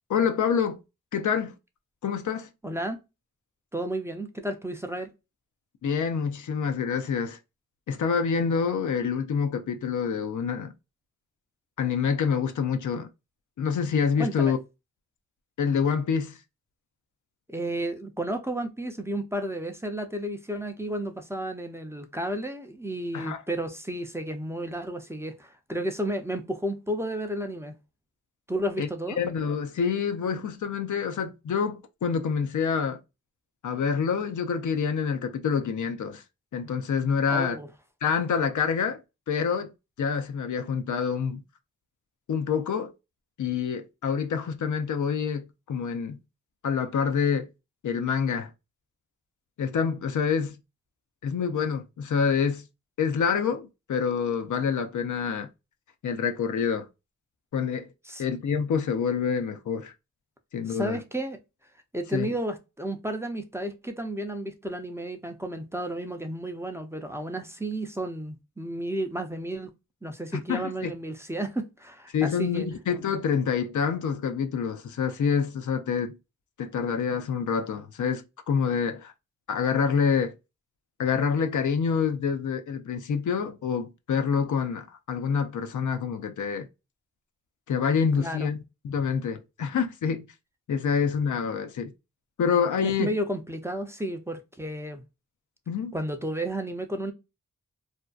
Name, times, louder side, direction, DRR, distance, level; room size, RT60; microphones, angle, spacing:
voice 1, 0.1-0.8 1.1-1.5 2.0-2.5 5.8-7.4 7.9-10.7 11.8-13.1 13.6-14.6 15.6-16.4 23.1-23.4 28.8-28.9 29.2-33.0 33.6-36.2 36.5-37.6 38.0-39.0 39.3-39.7 40.0-41.4 42.3-42.9 43.4-46.2 46.6-47.5 47.8-48.5 49.6-50.6 51.2-52.7 53.0-55.5 56.0-56.9 57.5-57.9 58.2-59.9 60.5-61.0 62.1-62.3 70.3-70.9 72.1-76.2 76.6-79.1 79.5-80.3 81.0-86.7 87.7-90.3 90.7-91.9 92.4-93.1 95.7-95.9, left 6 dB, 75° left, 0.5 m, -27 dB
voice 2, 2.6-3.0 3.7-5.1 14.2-14.5 17.5-27.7 28.5-29.2 37.3-37.7 58.1-58.2 60.7-61.4 61.9-69.7 70.0-72.7 88.2-88.5 92.8-95.0 95.9-97.1, right 1 dB, 10° right, 0.5 m, -32 dB
2.5 x 2.2 x 2.3 m
wide cardioid pair, 65°, 30 cm